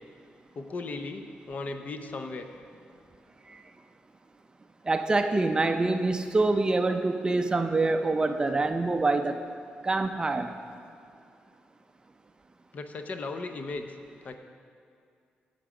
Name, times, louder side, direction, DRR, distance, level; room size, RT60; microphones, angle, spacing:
voice 1, 0.5-2.4 12.7-13.9 14.2-14.4, left 3 dB, 45° left, 7 dB, 0.6 m, -36 dB
voice 2, 4.9-9.4 9.8-10.5, right 3 dB, 25° right, 8 dB, 0.4 m, -25 dB
8.6 x 6.6 x 4.9 m, 2.4 s
cardioid pair, 100°, 4 cm